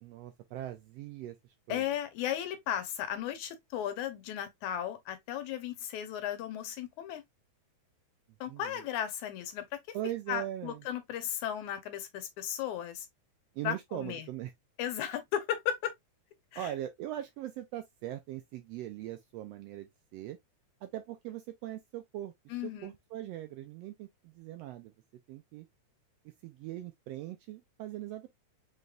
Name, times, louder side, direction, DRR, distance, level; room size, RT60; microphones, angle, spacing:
voice 1, 0.0-1.4 1.7-1.8 8.5-8.8 9.9-10.8 13.5-14.5 16.6-20.4 20.8-22.3 22.6-24.9 25.3-25.7 26.4-28.3, right 13 dB, 80° right, 1.4 m, -40 dB
voice 2, 1.7-7.2 8.4-9.8 10.3-13.1 13.6-14.3 14.8-15.9 16.5-16.7 22.5-22.9, left 10 dB, 80° left, 2.3 m, -35 dB
5.5 x 3.2 x 2.3 m
omnidirectional pair, 3.4 m